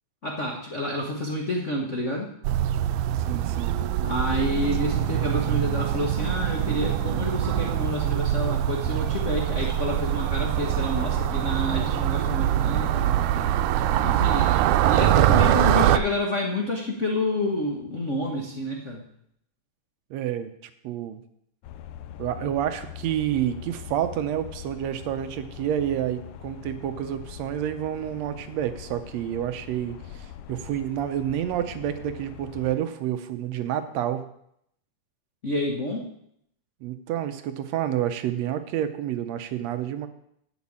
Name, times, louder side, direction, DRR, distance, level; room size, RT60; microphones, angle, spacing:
voice 1, 0.2-2.3 4.0-13.5 14.0-19.0 35.4-36.1, left 1 dB, 55° left, -1 dB, 0.8 m, -29 dB
sound 1, 2.4-16.0, right 11 dB, 90° right, 2.0 m, -23 dB
voice 2, 3.1-3.7 20.1-20.5 20.8-21.2 22.2-34.3 36.8-40.1, right 11 dB, 75° right, 10 dB, 1.8 m, -29 dB
sound 2, 21.6-32.8, left 10 dB, 85° left, 1.3 m, -42 dB
8.5 x 7.0 x 8.5 m, 0.72 s
omnidirectional pair, 3.4 m